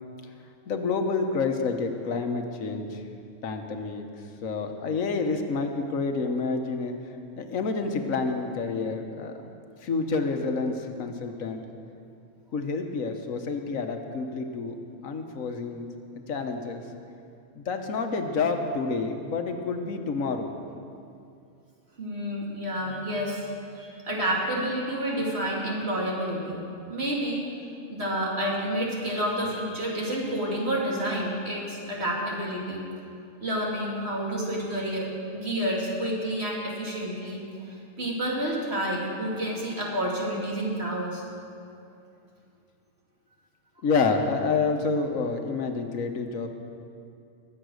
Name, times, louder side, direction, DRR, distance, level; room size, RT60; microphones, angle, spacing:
voice 1, 0.7-3.1 3.4-4.1 4.4-6.9 7.4-9.4 9.8-11.6 12.5-14.8 15.0-15.9 16.3-16.8 17.6-20.5 43.8-46.5, left 4 dB, 85° left, 5 dB, 1.5 m, -28 dB
voice 2, 22.0-23.4 23.7-27.4 27.9-32.8 33.4-41.2, right 1 dB, 50° right, -4 dB, 3.0 m, -29 dB
21.5 x 8.0 x 6.4 m, 2.5 s
omnidirectional pair, 1.4 m